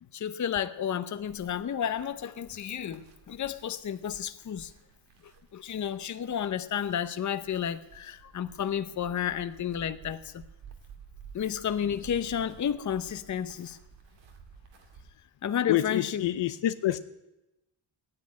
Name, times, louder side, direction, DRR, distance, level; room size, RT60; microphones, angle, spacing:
voice 1, 0.1-4.7 5.5-10.4 11.3-13.8 15.4-16.2, left 9 dB, 40° left, 0.8 m, -31 dB
sound 1, 1.2-15.1, right 6 dB, 75° right, 2.2 m, -53 dB
voice 2, 15.7-17.0, left 13 dB, 70° left, 0.9 m, -27 dB
14.5 x 9.7 x 9.6 m
cardioid pair, 100°, 45 cm